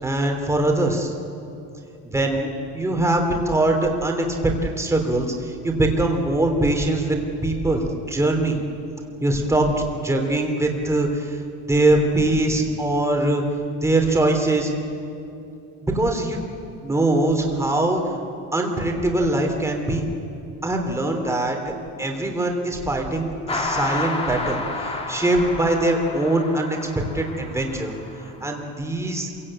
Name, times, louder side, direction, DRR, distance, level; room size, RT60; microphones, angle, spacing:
voice 1, 0.0-1.1 2.0-8.6 9.2-11.4 11.7-13.4 13.8-14.7 15.8-16.4 16.8-18.0 18.5-20.0 20.6-21.6 22.0-26.8 27.1-27.9 28.4-29.3, right 2 dB, 10° right, 2 dB, 3.2 m, -22 dB
sound 1, 23.5-28.3, left 2 dB, 15° left, 2.3 m, -30 dB
27.0 x 17.0 x 8.7 m, 2.6 s
cardioid pair, 145°, 34 cm